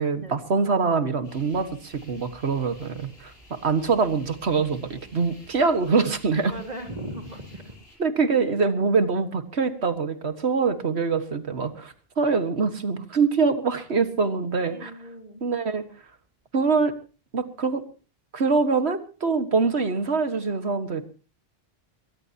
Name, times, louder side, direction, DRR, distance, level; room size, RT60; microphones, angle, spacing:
voice 1, 0.0-6.5 8.0-14.9 15.4-15.8 16.5-16.9 17.3-17.9 18.3-21.0, right 4 dB, 85° right, 10 dB, 1.9 m, -24 dB
sound 1, 1.2-8.0, equal, 60° left, 7.8 m, -52 dB
voice 2, 6.5-7.7 14.6-15.4, right 1 dB, 40° right, 3 dB, 3.6 m, -38 dB
22.5 x 19.0 x 2.9 m, 0.36 s
omnidirectional pair, 1.1 m